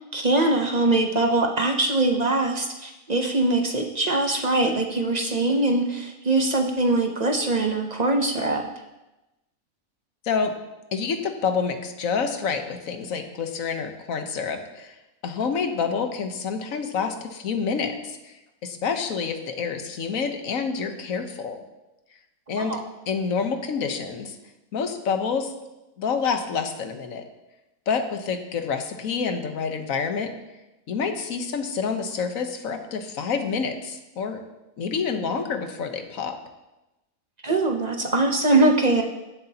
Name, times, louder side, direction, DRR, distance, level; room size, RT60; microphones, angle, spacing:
voice 1, 0.1-8.6 22.6-22.8 37.4-39.0, right 2 dB, 40° right, 3 dB, 0.7 m, -22 dB
voice 2, 10.9-14.9 15.2-18.3 18.6-21.6 22.5-22.8 23.1-24.4 24.7-25.5 26.0-27.2 27.9-30.3 30.9-34.4 34.8-36.4, left 5 dB, 70° left, 6 dB, 1.3 m, -28 dB
15.5 x 8.0 x 2.8 m, 0.99 s
omnidirectional pair, 1.5 m